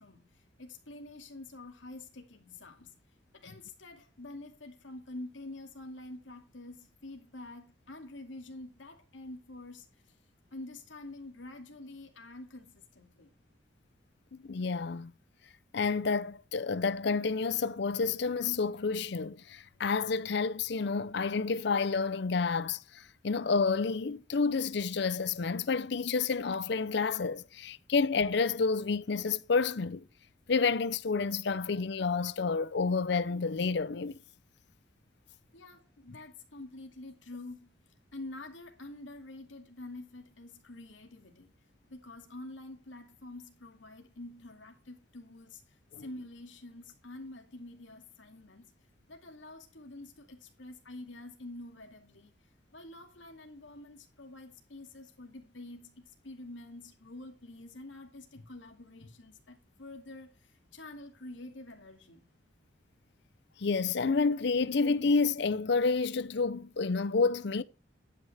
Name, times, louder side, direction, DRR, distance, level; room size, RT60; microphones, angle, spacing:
voice 1, 0.0-2.9 3.3-10.2 10.5-13.3 35.5-37.8 38.1-41.5 41.9-48.7 49.1-52.4 52.7-62.2, left 2 dB, 80° left, 2.4 m, -47 dB
voice 2, 14.4-15.1 15.7-30.0 30.5-34.2 45.9-46.0 63.6-67.6, left 4 dB, 60° left, 0.5 m, -29 dB
11.0 x 9.6 x 3.4 m
head